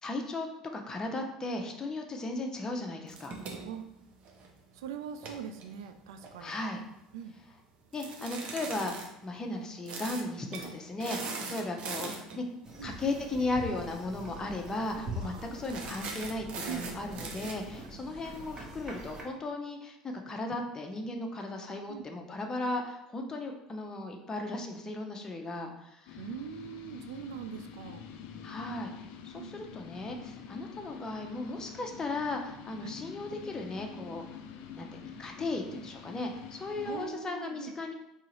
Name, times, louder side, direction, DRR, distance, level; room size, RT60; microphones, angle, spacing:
voice 1, 0.0-0.5 0.7-3.4 6.4-6.8 7.9-12.5 12.8-26.2 28.4-28.9 29.2-34.2 34.8-34.9 35.2-37.9, left 2 dB, 25° left, 2 dB, 0.6 m, -36 dB
sound 1, 3.1-4.6 5.1-6.6 7.9-9.1 9.9-10.2 10.5-10.7 11.0-12.4 13.7-13.9 14.2-14.3 14.7-15.0 15.6-17.5, right 4 dB, 50° right, 0.7 m, -41 dB
voice 2, 4.7-6.6 7.1-7.3 10.6-10.8 12.8-13.0 15.2-15.6 16.7-16.8 21.9-22.1 26.2-28.1 29.4-29.6 32.8-33.0 35.7-35.8 36.8-37.7, right 8 dB, 75° right, 8 dB, 0.3 m, -42 dB
sound 2, 12.6-19.2, equal, 25° right, 1.1 m, -44 dB
sound 3, 26.1-37.1, left 7 dB, 65° left, 0.4 m, -47 dB
3.7 x 2.8 x 3.0 m, 0.85 s
hypercardioid pair, 70°, 3 cm